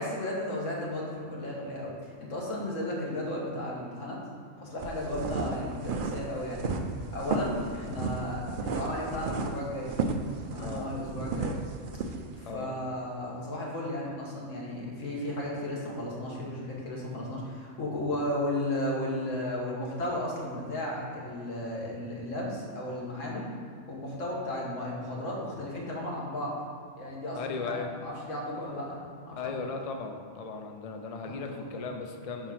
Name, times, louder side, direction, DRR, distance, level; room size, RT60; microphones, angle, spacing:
voice 1, 0.0-4.2 4.6-6.7 7.1-9.9 10.4-11.6 12.4-23.5 23.9-26.5 27.0-29.0 29.3-29.7 31.2-31.8, left 1 dB, 75° left, -4 dB, 1.7 m, -34 dB
sound 1, 4.8-12.4, right 4 dB, 65° right, 0.5 m, -33 dB
voice 2, 10.6-10.9 12.4-12.7 27.4-27.9 29.4-32.5, left 4 dB, 55° left, 4 dB, 0.4 m, -37 dB
4.8 x 4.4 x 5.9 m, 2.3 s
omnidirectional pair, 1.3 m